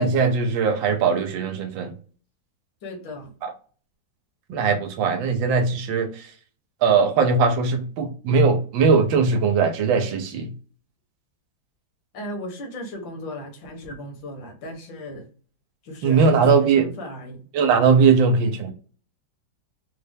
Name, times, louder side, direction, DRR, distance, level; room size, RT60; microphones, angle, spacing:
voice 1, 0.0-1.9 3.4-3.5 4.5-6.3 6.8-10.5 16.0-16.9 17.5-18.7, right 5 dB, 80° right, 1.4 m, -20 dB
voice 2, 2.8-3.3 12.1-15.3 15.8-17.5, left 1 dB, 75° left, 1.8 m, -36 dB
4.1 x 2.2 x 3.4 m
omnidirectional pair, 2.0 m